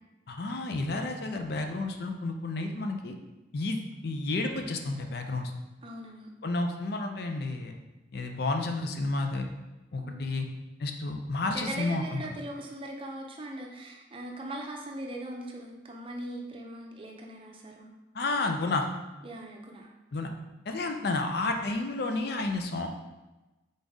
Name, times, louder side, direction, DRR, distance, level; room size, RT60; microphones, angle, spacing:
voice 1, 0.3-3.1 3.5-5.5 6.4-7.8 8.1-9.5 9.9-10.5 10.8-12.2 18.1-18.9 20.1-20.3 20.7-22.9, left 2 dB, 60° left, 4 dB, 0.5 m, -31 dB
voice 2, 5.8-6.3 10.0-10.4 11.4-17.9 19.2-19.9, right 1 dB, 30° right, 1 dB, 0.5 m, -40 dB
3.9 x 3.8 x 3.5 m, 1.1 s
head